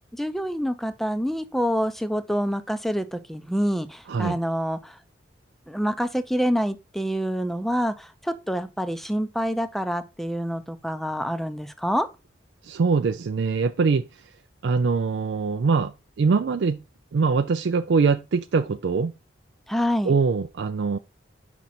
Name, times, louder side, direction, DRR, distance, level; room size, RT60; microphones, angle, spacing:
voice 1, 0.1-5.0 5.7-12.1 19.7-20.1, equal, ahead, 0.6 m, -27 dB
voice 2, 12.6-14.1 14.6-16.8 17.1-19.1 20.0-21.0, right 4 dB, 75° right, 0.4 m, -23 dB
6.0 x 5.3 x 4.2 m
head